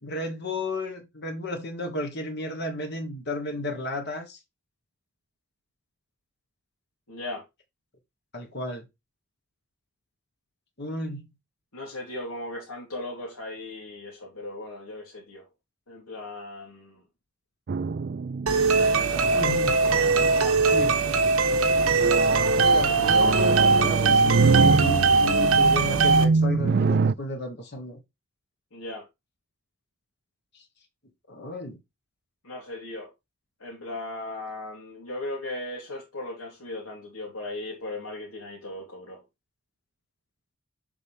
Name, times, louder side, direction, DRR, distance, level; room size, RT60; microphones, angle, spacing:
voice 1, 0.0-4.4 8.3-8.8 10.8-11.2 19.3-19.8 20.7-21.0 22.5-28.0 30.5-30.6 31.3-31.8, left 1 dB, 50° left, 1.4 m, -33 dB
voice 2, 7.1-7.4 11.7-15.5 15.9-17.0 18.7-19.5 19.8-21.1 28.7-29.1 32.4-33.1 33.6-39.2, left 2 dB, 90° left, 3.4 m, -37 dB
sound 1, 17.7-19.5 20.0-20.5 21.3-27.1, right 4 dB, 45° right, 0.3 m, -25 dB
sound 2, 18.5-26.2, right 4 dB, 80° right, 1.2 m, -21 dB
7.7 x 5.8 x 3.5 m
head